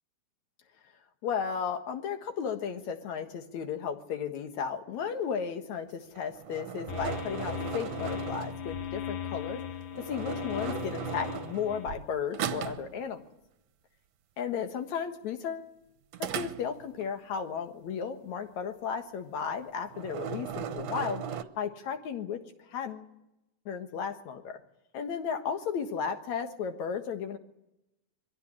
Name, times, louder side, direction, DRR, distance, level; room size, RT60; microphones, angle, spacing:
voice 1, 1.2-9.6 10.0-13.2 14.4-15.7 16.2-21.2 21.6-22.4 22.7-23.1 23.7-24.6 24.9-27.4, left 7 dB, 70° left, 7 dB, 2.7 m, -34 dB
sound 1, 6.2-9.0 9.9-12.0 12.3-12.9 16.1-17.0 19.4-19.6 19.9-21.4, right 9 dB, 70° right, 2.1 m, -37 dB
sound 2, 6.9-12.0, left 9 dB, 90° left, 2.8 m, -38 dB
23.0 x 16.0 x 10.0 m, 0.89 s
omnidirectional pair, 3.5 m